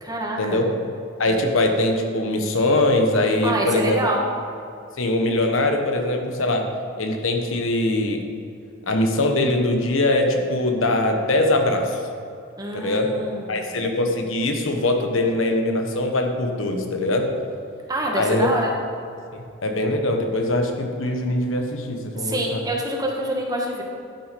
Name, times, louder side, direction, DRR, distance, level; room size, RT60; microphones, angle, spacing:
voice 1, 0.0-0.6 3.4-4.2 12.6-13.6 17.9-18.7 22.1-23.8, right 1 dB, 20° right, -1 dB, 1.5 m, -26 dB
voice 2, 1.2-4.0 5.0-6.6 7.0-8.2 8.9-12.0 12.7-13.1 13.5-17.3 18.1-18.5 19.6-22.6, left 1 dB, 85° left, 3 dB, 1.2 m, -22 dB
12.0 x 6.1 x 5.3 m, 2.5 s
head